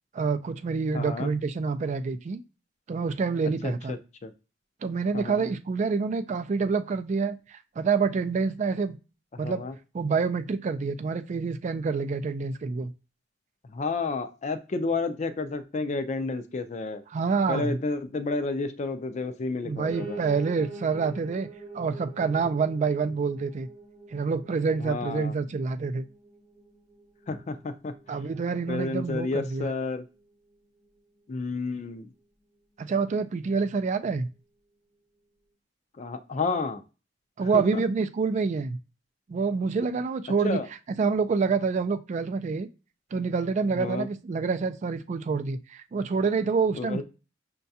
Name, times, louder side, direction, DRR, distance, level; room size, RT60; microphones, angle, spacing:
voice 1, 0.1-2.4 2.9-4.0 4.8-9.0 9.4-9.6 9.9-12.9 17.1-17.8 19.6-21.5 21.7-23.7 24.1-26.0 28.1-29.7 32.8-34.3 37.4-38.8 39.3-40.6 41.0-42.7 43.1-47.0, right 4 dB, 40° right, 9 dB, 0.3 m, -27 dB
voice 2, 0.9-1.3 3.6-4.3 5.1-5.4 9.3-9.7 13.7-17.0 17.5-20.2 24.8-25.4 27.3-27.9 28.7-30.0 31.3-32.1 36.0-36.8 37.5-37.8 40.4-40.7 43.8-44.1 46.7-47.0, left 3 dB, 40° left, 9 dB, 0.4 m, -31 dB
Piano, 19.9-29.0 29.4-30.6 30.8-30.9 31.2-31.3 31.5-31.6 32.2-32.3, right 3 dB, 20° right, 0.8 m, -46 dB
5.6 x 2.2 x 2.7 m, 0.32 s
head